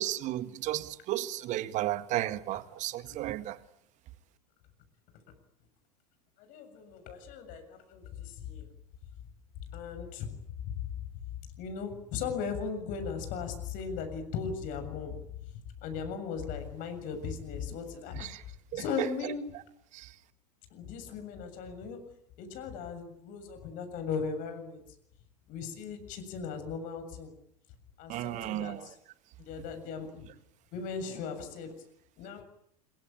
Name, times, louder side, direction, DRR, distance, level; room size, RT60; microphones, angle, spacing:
voice 1, 0.0-3.6 18.1-18.5 18.7-19.6 19.9-20.2 28.1-29.0, right 14 dB, 35° right, 1.8 m, -34 dB
voice 2, 6.4-8.7 9.7-10.3 10.6-10.9 11.6-15.4 15.8-18.3 18.7-19.4 20.7-22.0 22.4-24.8 25.5-27.3 28.0-28.8 29.4-30.3 30.7-31.7 32.2-32.4, left 6 dB, 40° left, 7.2 m, -37 dB
26.5 x 23.5 x 8.9 m
figure-of-eight pair, 85°, 21 cm